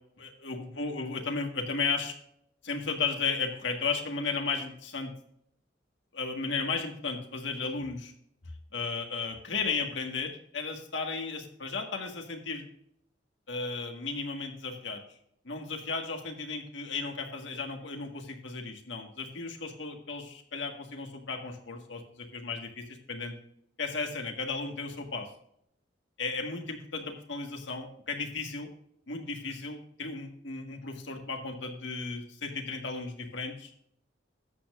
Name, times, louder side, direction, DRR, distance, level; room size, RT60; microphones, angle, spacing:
voice 1, 0.2-2.1 2.6-5.1 6.1-8.1 8.7-12.6 13.5-15.0 15.5-23.4 23.8-25.3 26.2-28.7 29.1-33.7, left 4 dB, 75° left, 3 dB, 1.9 m, -34 dB
13.0 x 8.8 x 2.6 m, 0.71 s
head